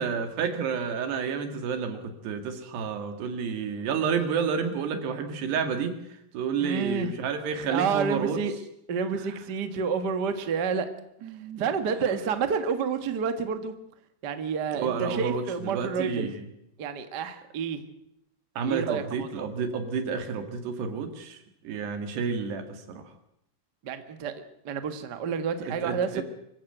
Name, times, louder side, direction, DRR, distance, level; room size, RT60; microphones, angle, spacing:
voice 1, 0.0-5.9 6.3-8.4 11.2-11.7 11.9-12.0 14.7-16.4 18.6-21.4 21.6-23.1 25.6-26.2, right 6 dB, 85° right, 7 dB, 4.3 m, -30 dB
voice 2, 6.6-7.1 7.7-8.5 8.9-10.9 11.6-13.7 14.2-16.3 16.8-17.8 18.7-19.5 23.8-24.3 24.6-26.2, right 6 dB, 70° right, 9 dB, 0.9 m, -29 dB
25.0 x 15.5 x 8.0 m, 0.80 s
omnidirectional pair, 4.7 m